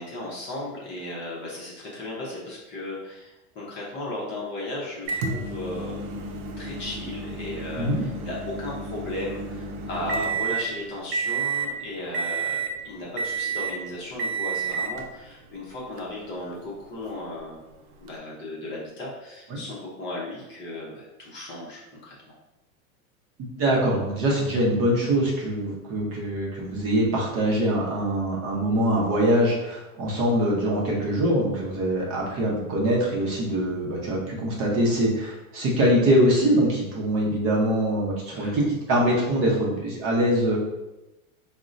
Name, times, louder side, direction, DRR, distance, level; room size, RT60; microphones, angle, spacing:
voice 1, 0.0-6.0 6.6-17.6 18.0-22.3 38.3-38.6, left 1 dB, 25° left, -5 dB, 0.6 m, -35 dB
Microwave oven, 5.1-10.7 11.1-11.7 12.1-12.8 13.2-13.8 14.2-15.0 16.0-16.1 18.1-18.2, right 4 dB, 75° right, 0.6 m, -30 dB
voice 2, 23.6-40.6, right 1 dB, 30° right, -3 dB, 0.7 m, -23 dB
3.6 x 2.1 x 2.5 m, 1.0 s
supercardioid pair, 135°, 43 cm